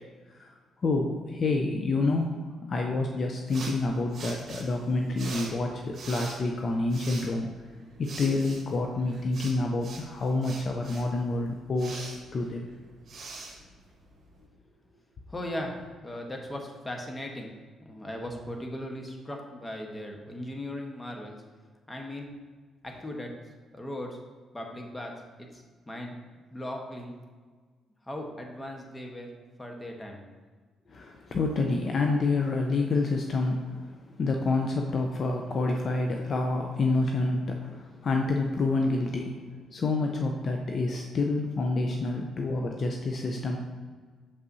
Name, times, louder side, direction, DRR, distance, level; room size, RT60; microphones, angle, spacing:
voice 1, 0.8-2.4 2.7-7.5 8.0-12.7 30.9-39.4 39.7-43.6, left 3 dB, 50° left, 2 dB, 0.5 m, -28 dB
sound 1, 3.5-14.4, right 3 dB, 55° right, 1.5 m, -44 dB
voice 2, 15.3-15.7 16.0-17.5 17.8-21.4 21.9-22.3 22.8-23.3 23.7-24.2 24.5-25.1 25.4-26.2 26.5-27.1 28.1-29.3 29.6-30.2, left 1 dB, 15° left, 1 dB, 1.1 m, -38 dB
6.8 x 5.4 x 2.7 m, 1.5 s
cardioid pair, 90°, 0 cm